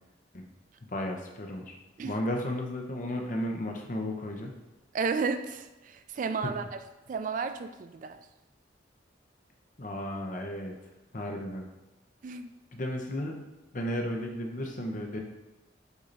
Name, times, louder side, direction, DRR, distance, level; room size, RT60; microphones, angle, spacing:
voice 1, 0.9-1.7 2.0-4.5 6.4-6.5 9.8-10.7 11.1-11.6 12.7-13.4 13.7-15.2, left 1 dB, 45° left, 1 dB, 0.8 m, -34 dB
voice 2, 4.9-5.7 6.2-6.8 7.1-8.2 12.2-12.5, right 5 dB, 45° right, 9 dB, 0.3 m, -32 dB
8.0 x 2.9 x 4.0 m, 1.1 s
head